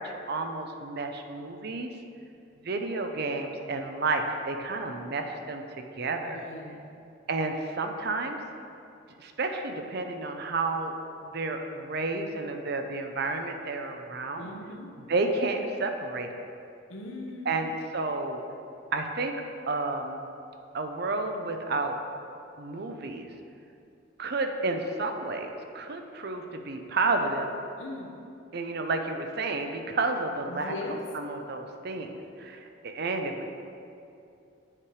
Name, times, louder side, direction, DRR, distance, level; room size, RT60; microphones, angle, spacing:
voice 1, 0.0-1.9 2.6-6.4 7.3-8.4 9.2-11.0 11.2-14.5 15.0-16.3 17.5-18.4 18.9-19.3 19.7-20.2 20.7-22.0 22.6-23.3 24.2-27.5 28.5-30.7 31.1-33.3, right 3 dB, 55° right, 5 dB, 0.6 m, -31 dB
voice 2, 6.2-6.9 14.4-14.9 16.9-17.5 27.8-28.1 30.5-31.0, left 2 dB, 70° left, 1 dB, 0.9 m, -39 dB
8.9 x 4.8 x 4.8 m, 2.6 s
head